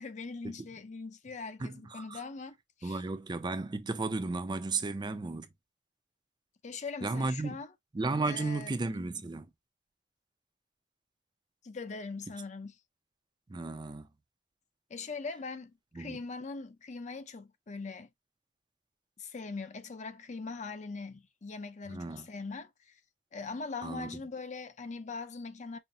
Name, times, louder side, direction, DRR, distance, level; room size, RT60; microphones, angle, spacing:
voice 1, 0.0-3.0 6.6-7.7 8.2-8.7 11.6-12.7 14.9-18.1 19.2-22.9 23.3-25.8, left 4 dB, 40° left, 0.6 m, -41 dB
voice 2, 1.6-2.2 2.8-5.5 7.0-7.6 7.9-9.5 13.5-14.1 15.9-16.2 21.9-22.3 23.8-24.2, right 3 dB, 25° right, 0.4 m, -34 dB
5.6 x 2.1 x 2.6 m
head